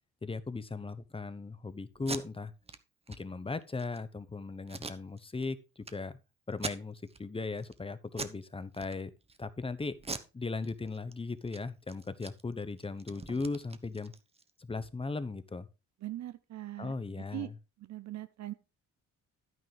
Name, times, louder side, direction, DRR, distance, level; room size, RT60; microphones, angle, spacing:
voice 1, 0.2-2.5 3.2-6.2 6.5-9.1 9.4-10.0 10.3-14.1 14.6-15.7 16.8-17.5, left 3 dB, 20° left, 0.9 m, -37 dB
Packing tape duct tape, 1.9-2.2 2.7-2.8 3.1-3.2 3.6-4.0 4.7-5.5 5.8-5.9 6.5-7.2 7.6-7.8 8.1-8.4 8.7-9.4 10.0-11.1 11.4-11.6 11.9-14.5, right 3 dB, 20° right, 1.0 m, -42 dB
voice 2, 16.0-16.9 17.3-17.5 17.8-18.5, right 14 dB, 65° right, 0.7 m, -40 dB
10.5 x 9.4 x 3.3 m
cardioid pair, 90°, 30 cm